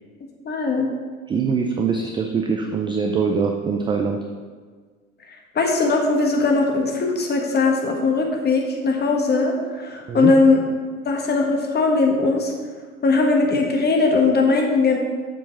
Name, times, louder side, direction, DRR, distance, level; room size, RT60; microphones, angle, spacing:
voice 1, 0.4-0.9 5.5-10.6 11.0-12.5 13.0-15.0, left 3 dB, 25° left, 1 dB, 1.6 m, -19 dB
voice 2, 1.3-4.2 10.1-10.3, right 5 dB, 15° right, 4 dB, 0.3 m, -23 dB
7.2 x 7.0 x 4.1 m, 1.5 s
hypercardioid pair, 80°, 42 cm